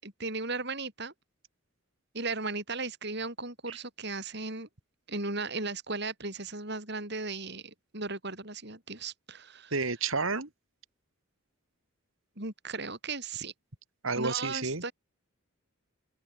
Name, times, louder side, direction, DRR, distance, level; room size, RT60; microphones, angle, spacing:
voice 1, 0.0-1.1 2.1-4.7 5.1-9.7 12.4-13.5 14.1-14.9, right 3 dB, 50° right, 7.2 m, -36 dB
voice 2, 9.7-10.5 14.0-14.8, right 4 dB, 75° right, 2.6 m, -30 dB
open air
head